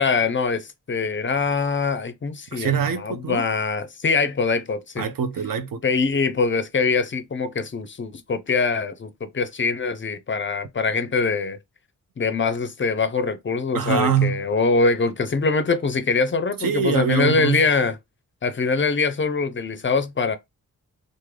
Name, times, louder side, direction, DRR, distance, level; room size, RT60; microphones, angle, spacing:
voice 1, 0.0-5.1 5.8-11.6 12.2-18.0 18.4-20.4, left 4 dB, 35° left, 0.4 m, -23 dB
voice 2, 2.5-3.4 5.0-5.8 13.7-14.4 16.6-17.6, right 7 dB, 70° right, 0.6 m, -23 dB
3.1 x 2.1 x 3.5 m
wide cardioid pair, 135°, 35 cm